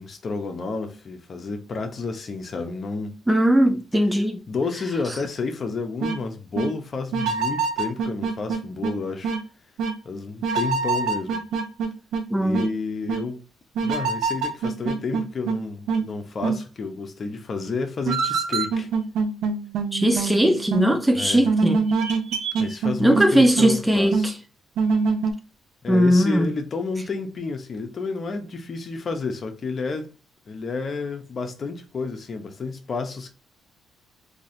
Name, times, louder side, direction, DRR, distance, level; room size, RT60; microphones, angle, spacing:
voice 1, 0.0-3.2 4.5-9.3 10.0-11.4 12.4-13.4 13.8-18.9 21.2-21.5 22.6-24.3 25.8-30.1 30.5-33.3, left 4 dB, 45° left, 0.8 m, -30 dB
voice 2, 3.3-4.4 12.3-12.7 19.9-21.8 23.0-24.3 25.9-26.5, equal, 10° right, 0.5 m, -19 dB
sound 1, 6.0-6.2 6.6-6.7 7.1-8.9 9.2-9.4 9.8-9.9 10.4-12.2 12.5-12.7 13.1-13.2 13.8-15.6 15.9-16.0 16.4-16.6 18.1-21.0 21.4-23.3 23.6-23.8 24.1-24.3 24.8-25.3, right 5 dB, 80° right, 0.6 m, -24 dB
4.0 x 2.9 x 2.7 m
cardioid pair, 90°, 0 cm